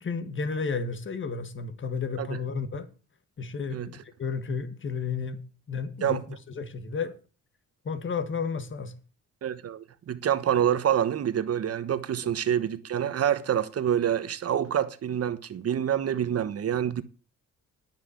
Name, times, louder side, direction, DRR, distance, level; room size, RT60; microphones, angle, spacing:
voice 1, 0.0-2.9 3.4-5.4 5.7-6.2 6.6-7.1 7.9-8.9, left 5 dB, 40° left, 1.9 m, -32 dB
voice 2, 9.4-17.0, right 9 dB, 55° right, 1.2 m, -27 dB
10.5 x 6.3 x 8.4 m
cardioid pair, 90°, 30 cm